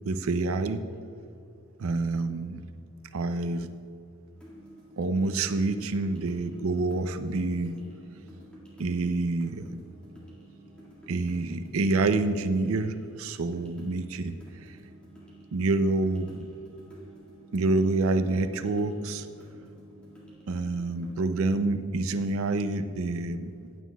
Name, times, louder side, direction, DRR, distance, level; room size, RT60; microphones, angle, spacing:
voice 1, 0.0-0.9 1.8-2.6 3.1-3.7 5.0-7.8 8.8-9.8 11.1-14.4 14.6-14.8 15.5-16.5 17.5-19.3 20.5-23.5, right 3 dB, 70° right, 10 dB, 0.5 m, -27 dB
sound 1, 4.3-21.1, right 1 dB, 5° left, 1.8 m, -51 dB
15.5 x 9.2 x 2.2 m, 2.6 s
head